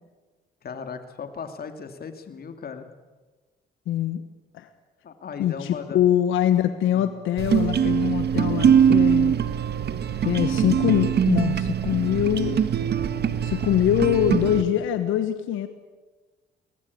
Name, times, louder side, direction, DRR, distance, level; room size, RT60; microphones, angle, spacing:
voice 1, 0.6-2.9 5.0-6.0 6.9-7.1, left 6 dB, 50° left, 7 dB, 2.7 m, -37 dB
voice 2, 3.9-4.2 4.5-4.7 5.4-9.3 10.2-12.6 13.4-15.7, left 11 dB, 90° left, 10 dB, 1.3 m, -23 dB
sound 1, 7.4-14.6, right 8 dB, 55° right, 1.5 m, -22 dB
23.5 x 19.0 x 8.5 m, 1.3 s
cardioid pair, 90°, 20 cm